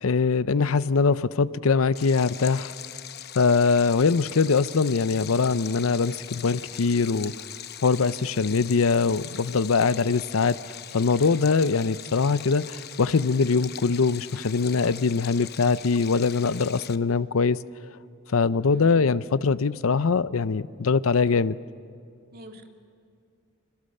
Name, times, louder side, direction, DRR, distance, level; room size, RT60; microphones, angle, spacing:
voice 1, 0.0-2.7 3.4-7.3 7.8-17.6 18.3-21.6, left 4 dB, 85° left, 0.6 m, -22 dB
Stream, 1.9-17.0, left 10 dB, 50° left, 0.8 m, -41 dB
voice 2, 18.7-19.1 22.3-22.7, right 1 dB, 50° right, 2.4 m, -45 dB
30.0 x 28.0 x 6.6 m
head